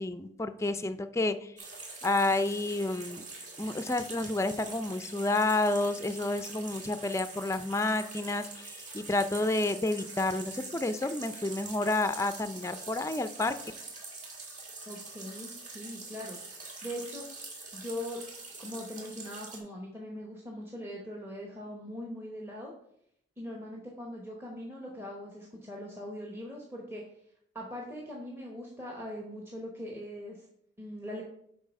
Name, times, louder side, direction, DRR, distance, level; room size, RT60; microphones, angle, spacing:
voice 1, 0.0-1.5 2.0-3.2 3.6-13.6, left 2 dB, 15° left, 10 dB, 0.4 m, -30 dB
sound 1, 1.6-19.6, right 3 dB, 40° right, 1.9 m, -44 dB
voice 2, 14.9-16.4 16.8-17.2 17.7-18.2 18.6-22.7 23.4-27.0 27.5-30.5 30.8-31.2, equal, 15° right, -2 dB, 1.0 m, -41 dB
7.3 x 4.8 x 5.3 m, 0.71 s
head